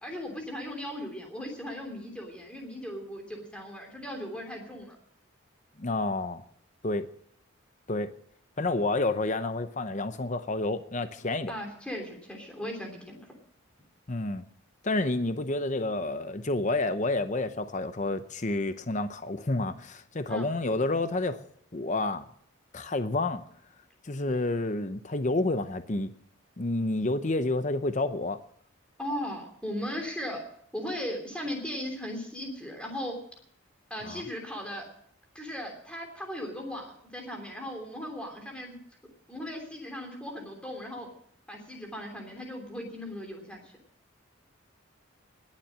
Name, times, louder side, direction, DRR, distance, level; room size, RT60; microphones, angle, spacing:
voice 1, 0.0-5.0 11.5-13.3 20.2-20.5 29.0-30.4 30.7-33.2 33.9-34.9 35.3-38.8 39.3-41.1 41.5-43.7, equal, 5° left, 3.1 m, -37 dB
voice 2, 5.8-6.4 6.8-7.1 7.9-8.1 8.6-11.5 14.1-14.4 14.8-21.5 21.7-22.2 22.7-23.4 24.0-26.1 26.6-28.4 34.0-34.2, left 2 dB, 35° left, 0.7 m, -29 dB
20.0 x 7.5 x 7.4 m
head